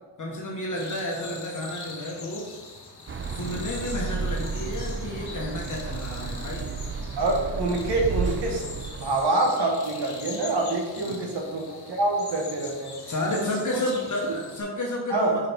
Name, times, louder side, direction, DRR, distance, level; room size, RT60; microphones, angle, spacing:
voice 1, 0.2-2.5 3.3-6.7 11.1-11.2 13.0-15.5, left 1 dB, 50° left, -2 dB, 1.3 m, -31 dB
sound 1, 0.7-14.6, left 4 dB, 70° left, 1.4 m, -43 dB
sound 2, 3.1-9.3, right 5 dB, 30° right, 0.5 m, -32 dB
voice 2, 7.2-13.0 13.3-13.8 15.1-15.5, right 2 dB, 85° right, 1 dB, 1.3 m, -26 dB
5.5 x 4.9 x 4.5 m, 1.3 s
cardioid pair, 70°, 39 cm